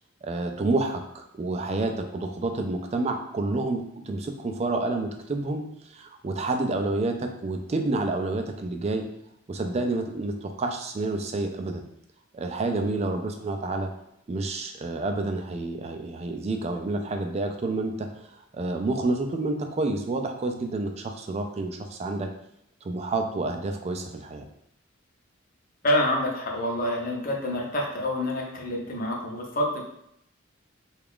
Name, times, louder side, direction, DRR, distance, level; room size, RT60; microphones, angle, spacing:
voice 1, 0.2-9.0 9.5-11.8 12.3-13.9 14.3-22.3 22.8-24.4, right 2 dB, 30° right, 5 dB, 0.3 m, -29 dB
voice 2, 25.8-29.8, left 1 dB, 45° left, -1 dB, 0.7 m, -27 dB
3.4 x 2.4 x 3.5 m, 0.77 s
head